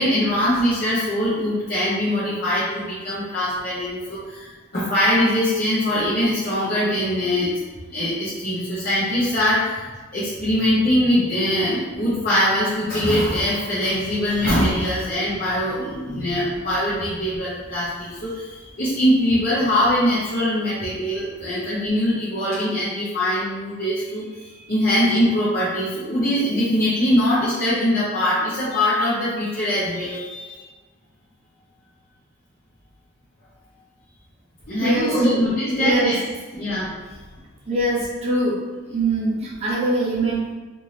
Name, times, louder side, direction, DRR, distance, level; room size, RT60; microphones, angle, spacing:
voice 1, 0.0-7.6 7.9-30.6 34.7-36.2 36.6-36.9, left 1 dB, 45° left, -10 dB, 0.7 m, -22 dB
voice 2, 34.8-35.3 35.7-36.1 37.7-38.6 38.8-40.4, right 1 dB, 30° right, -6 dB, 0.8 m, -22 dB
2.6 x 2.6 x 3.2 m, 1.3 s
head